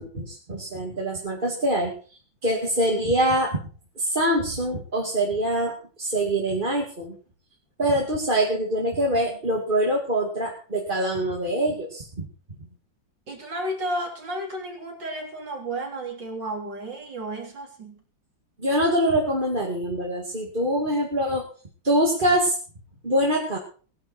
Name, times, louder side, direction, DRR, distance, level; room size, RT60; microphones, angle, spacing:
voice 1, 0.0-1.9 2.4-3.6 4.0-7.1 7.8-12.3 18.6-21.4 21.8-22.6 23.0-23.6, right 1 dB, 25° right, -1 dB, 2.4 m, -24 dB
voice 2, 13.3-18.0, right 1 dB, 70° right, 1 dB, 4.3 m, -32 dB
19.0 x 11.0 x 4.4 m, 0.40 s
omnidirectional pair, 2.0 m